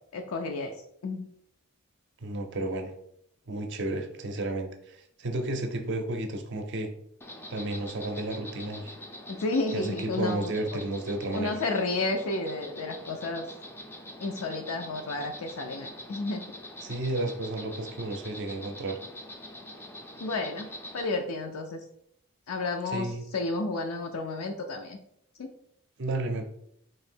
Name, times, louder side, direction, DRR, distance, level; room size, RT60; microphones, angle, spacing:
voice 1, 0.1-0.7 1.0-1.3 9.3-10.5 11.3-13.5 14.2-16.4 20.2-20.7 20.9-21.8 22.5-25.0 25.4-25.5, left 2 dB, 75° left, 4 dB, 0.4 m, -31 dB
voice 2, 2.2-2.9 3.5-6.9 7.5-8.9 9.7-11.6 16.8-19.0 22.9-23.2 26.0-26.5, right 2 dB, 55° right, 6 dB, 0.5 m, -32 dB
Insect, 7.2-21.1, left 1 dB, 10° left, 0.4 m, -44 dB
3.1 x 2.7 x 4.3 m, 0.72 s
head